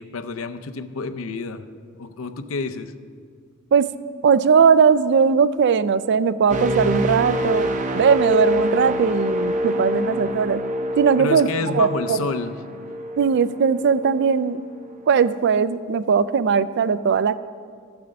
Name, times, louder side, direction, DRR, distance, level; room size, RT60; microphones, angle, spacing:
voice 1, 0.0-1.6 1.9-2.9 11.2-12.6, left 4 dB, 75° left, 9 dB, 0.6 m, -29 dB
voice 2, 4.2-7.7 7.9-10.6 11.0-12.2 13.2-14.6 15.1-17.4, right 6 dB, 55° right, 15 dB, 0.4 m, -19 dB
sound 1, 6.5-14.3 14.8-15.0, equal, 35° right, 0.7 m, -26 dB
13.0 x 7.0 x 5.2 m, 2.1 s
head